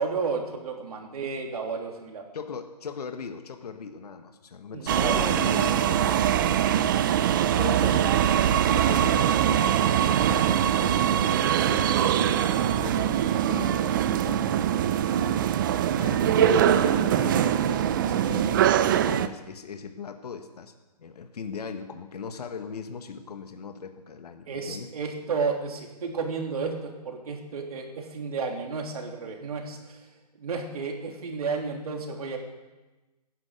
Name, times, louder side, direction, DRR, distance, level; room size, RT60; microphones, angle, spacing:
voice 1, 0.0-2.2 4.7-5.2 24.5-30.1 30.4-32.4, right 4 dB, 60° right, 2 dB, 3.3 m, -32 dB
voice 2, 2.3-7.1 7.6-8.2 8.4-13.2 13.4-14.6 15.0-15.6 16.0-18.6 18.9-20.7 21.0-24.9, left 5 dB, 65° left, 6 dB, 1.6 m, -39 dB
sound 1, 4.9-19.3, right 10 dB, 30° right, 0.6 m, -23 dB
18.0 x 10.5 x 6.6 m, 1.1 s
hypercardioid pair, 150°, 21 cm